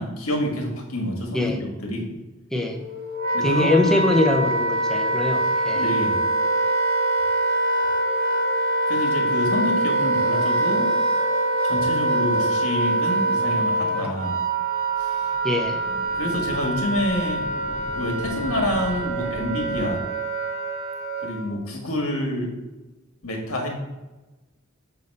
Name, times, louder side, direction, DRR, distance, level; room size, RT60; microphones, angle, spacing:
voice 1, 0.0-2.1 3.3-3.9 5.7-6.2 8.9-10.9 11.6-14.4 15.0-15.1 16.1-17.4 17.9-20.0 21.2-22.5 23.2-23.7, left 1 dB, 80° left, 1 dB, 1.5 m, -27 dB
Wind instrument woodwind instrument, 2.7-21.5, right 2 dB, 45° right, 0.7 m, -24 dB
voice 2, 3.4-5.9 15.4-15.8, left 1 dB, ahead, 2 dB, 0.7 m, -22 dB
sound 1, 14.9-19.9, left 1 dB, 60° left, 0.7 m, -39 dB
6.9 x 2.7 x 5.3 m, 1.1 s
head